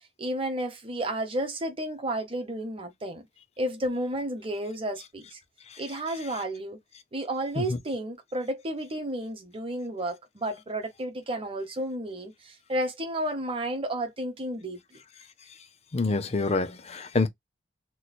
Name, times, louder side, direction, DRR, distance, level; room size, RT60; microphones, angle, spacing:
voice 1, 0.2-3.2 3.6-5.4 5.8-6.8 7.1-14.8, right 1 dB, 30° right, 0.9 m, -32 dB
voice 2, 15.9-17.3, left 3 dB, 35° left, 0.5 m, -26 dB
3.1 x 2.1 x 4.1 m
head